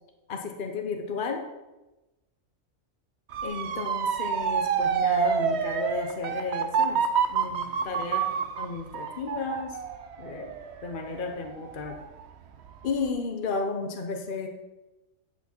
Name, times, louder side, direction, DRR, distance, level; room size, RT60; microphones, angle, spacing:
voice 1, 0.3-1.5 3.4-9.8 10.2-12.0 12.8-14.5, left 4 dB, 45° left, 4 dB, 0.9 m, -33 dB
Motor vehicle (road) / Siren, 3.3-12.2 12.6-13.1, right 7 dB, 60° right, 0.8 m, -28 dB
12.0 x 6.0 x 4.4 m, 1.0 s
omnidirectional pair, 1.5 m